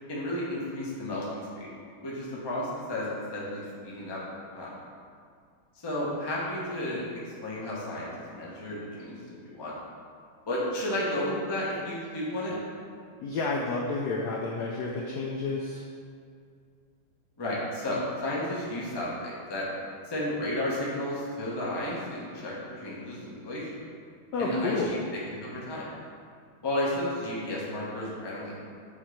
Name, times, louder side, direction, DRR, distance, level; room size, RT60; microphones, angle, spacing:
voice 1, 0.1-1.7 2.0-4.2 4.5-4.7 5.7-9.7 10.5-12.6 17.4-19.7 20.1-23.8 24.4-25.0 25.4-25.9 26.6-28.6, left 1 dB, 20° left, -6 dB, 0.6 m, -32 dB
voice 2, 13.2-15.8 24.3-24.9, left 3 dB, 75° left, -2 dB, 0.9 m, -30 dB
7.2 x 3.0 x 4.9 m, 2.2 s
omnidirectional pair, 2.3 m